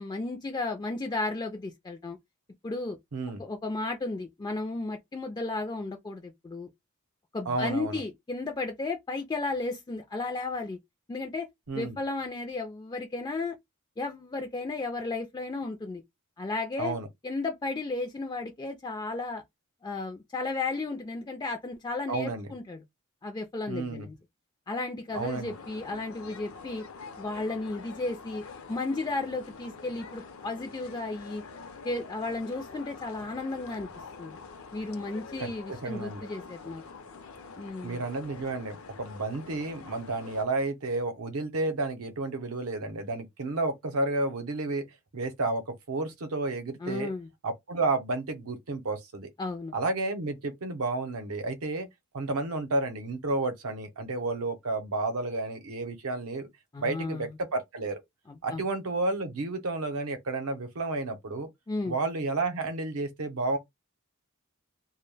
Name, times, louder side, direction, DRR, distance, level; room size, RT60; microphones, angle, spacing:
voice 1, 0.0-2.2 2.6-3.0 3.4-6.7 7.3-10.8 11.1-11.5 11.7-13.5 14.0-16.0 16.4-16.9 17.2-19.4 19.8-22.8 23.2-24.1 24.7-26.8 27.2-31.4 31.8-33.9 34.2-34.4 34.7-36.8 37.6-38.0 46.8-47.3 49.4-49.7 56.7-57.3 58.3-58.6 61.7-62.0, left 3 dB, 20° left, 0.3 m, -34 dB
voice 2, 7.5-8.0 11.7-12.0 16.8-17.1 22.1-22.5 23.7-24.1 25.1-25.5 35.4-36.3 37.8-44.8 45.1-47.1 47.4-49.3 49.7-51.9 52.1-56.5 56.8-58.0 58.4-61.5 61.9-63.6, right 3 dB, 80° right, 0.7 m, -31 dB
sound 1, 25.1-40.4, left 4 dB, 70° left, 0.5 m, -46 dB
2.2 x 2.1 x 3.2 m
head